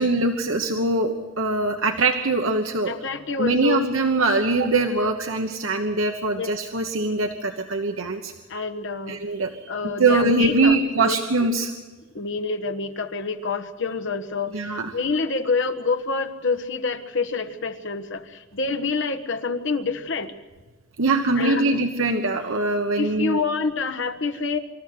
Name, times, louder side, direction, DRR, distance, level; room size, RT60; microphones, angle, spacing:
voice 1, 0.0-2.9 3.4-8.3 9.1-9.5 10.0-11.7 14.5-14.9 21.0-23.4, right 2 dB, 70° right, 5 dB, 1.2 m, -22 dB
voice 2, 2.9-3.8 6.4-6.5 8.5-9.2 9.7-11.2 12.1-14.5 14.9-18.2 18.5-20.3 21.4-21.8 23.0-24.6, left 4 dB, 60° left, 8 dB, 1.4 m, -27 dB
25.5 x 14.0 x 7.9 m, 1.3 s
head